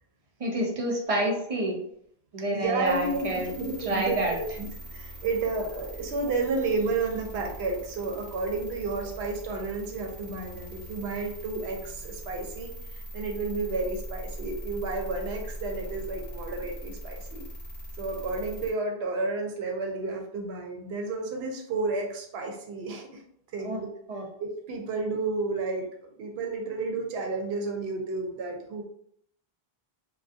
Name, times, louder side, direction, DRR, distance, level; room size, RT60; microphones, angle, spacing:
voice 1, 0.4-1.8 2.3-3.5 3.8-4.3 23.6-23.8 24.1-24.2, right 1 dB, 50° right, -1 dB, 0.5 m, -28 dB
voice 2, 2.5-17.4 18.0-23.2 23.5-23.9 24.4-28.8, right 3 dB, 85° right, 2 dB, 0.8 m, -31 dB
sound 1, 2.8-18.7, equal, 40° left, 0.9 m, -41 dB
2.5 x 2.2 x 2.4 m, 0.69 s
omnidirectional pair, 1.0 m